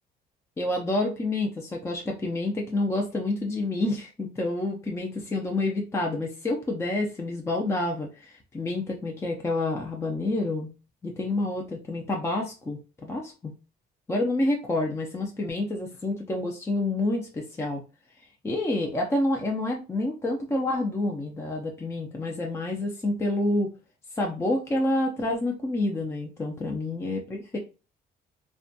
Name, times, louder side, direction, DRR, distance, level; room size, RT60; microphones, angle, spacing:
voice 1, 0.6-10.7 11.0-13.5 14.1-17.8 18.4-23.7 24.2-27.6, left 2 dB, 15° left, 0 dB, 0.5 m, -28 dB
2.5 x 2.2 x 2.6 m, 0.32 s
cardioid pair, 110°, 17 cm